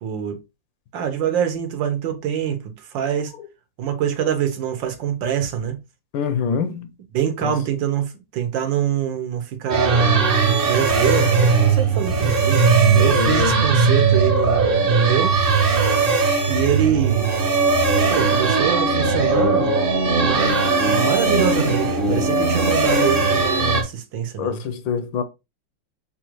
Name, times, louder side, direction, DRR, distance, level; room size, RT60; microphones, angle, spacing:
voice 1, 0.0-0.4 0.9-3.3 3.8-5.8 7.1-12.7 13.0-15.4 16.5-17.3 18.1-19.7 20.2-24.6, right 9 dB, 80° right, 1.6 m, -25 dB
voice 2, 6.1-6.9 7.4-7.5 12.8-13.7 24.4-25.2, left 6 dB, 85° left, 1.4 m, -25 dB
sound 1, 9.7-23.8, right 4 dB, 45° right, 0.7 m, -18 dB
6.6 x 2.5 x 3.0 m
omnidirectional pair, 2.0 m